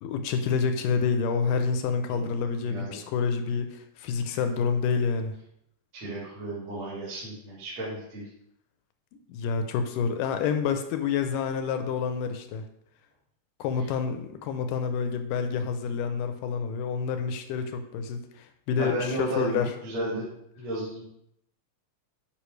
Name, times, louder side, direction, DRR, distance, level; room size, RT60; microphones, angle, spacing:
voice 1, 0.0-5.4 9.3-12.6 13.6-19.7, left 6 dB, 80° left, 7 dB, 2.1 m, -28 dB
voice 2, 2.6-3.0 5.9-8.3 18.8-20.3 20.6-21.0, right 1 dB, 50° right, -9 dB, 3.3 m, -33 dB
10.0 x 5.4 x 3.2 m, 0.76 s
omnidirectional pair, 4.1 m